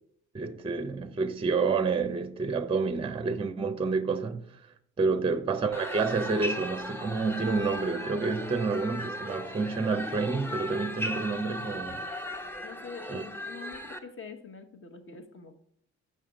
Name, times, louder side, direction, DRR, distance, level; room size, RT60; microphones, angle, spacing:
voice 1, 0.3-4.5 5.0-12.0 13.1-13.2, right 4 dB, 20° right, 0.6 m, -29 dB
sound 1, 5.7-14.0, equal, 5° left, 0.8 m, -37 dB
voice 2, 12.6-15.6, left 5 dB, 45° left, 1.2 m, -45 dB
6.6 x 5.6 x 5.1 m
cardioid pair, 90°, 30 cm